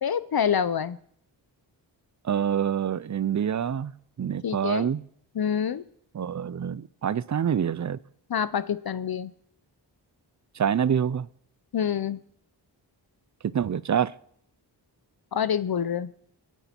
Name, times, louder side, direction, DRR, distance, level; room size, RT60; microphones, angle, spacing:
voice 1, 0.0-1.0 4.4-4.9 5.4-5.8 8.3-9.3 11.7-12.2 15.3-16.1, left 8 dB, 55° left, 15 dB, 0.6 m, -26 dB
voice 2, 2.2-3.9 4.2-5.0 6.1-8.0 10.6-11.3 13.5-14.1, right 8 dB, 40° right, 20 dB, 0.5 m, -26 dB
24.5 x 9.2 x 4.4 m, 0.66 s
wide cardioid pair, 85°, 44 cm